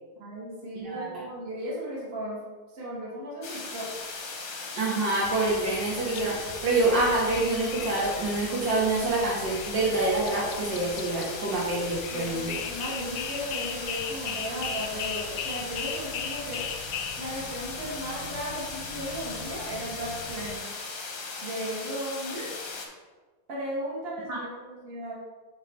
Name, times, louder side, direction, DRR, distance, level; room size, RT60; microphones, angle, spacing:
voice 1, 0.2-2.4 2.7-3.9 12.1-16.6 17.2-20.6 21.4-22.5 23.5-25.2, equal, 30° right, -6 dB, 1.7 m, -36 dB
voice 2, 0.8-1.2 4.8-12.6 24.3-24.4, right 2 dB, 60° right, -5 dB, 2.0 m, -26 dB
sound 1, 3.4-22.9, left 4 dB, 55° left, 1.1 m, -38 dB
sound 2, 5.2-20.6, left 7 dB, 80° left, 1.4 m, -39 dB
7.9 x 3.2 x 4.3 m, 1.3 s
omnidirectional pair, 2.3 m